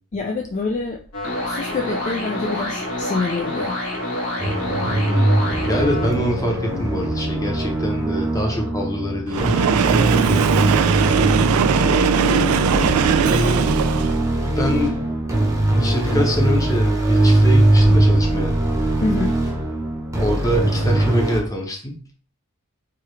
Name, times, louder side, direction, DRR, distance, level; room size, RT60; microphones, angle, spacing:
voice 1, 0.1-1.0 1.4-3.8 19.0-19.4, left 3 dB, 35° left, 1 dB, 0.3 m, -26 dB
sound 1, 1.1-6.1, left 1 dB, 75° left, 1.2 m, -27 dB
sound 2, 4.4-21.4, right 1 dB, 15° right, 0.8 m, -20 dB
voice 2, 5.7-10.4 13.2-13.8 14.5-15.0 15.7-18.5 20.2-22.1, equal, 15° left, 1 dB, 0.7 m, -25 dB
Train, 9.3-14.3, right 7 dB, 80° right, 0.3 m, -19 dB
4.7 x 2.3 x 3.1 m, 0.42 s
head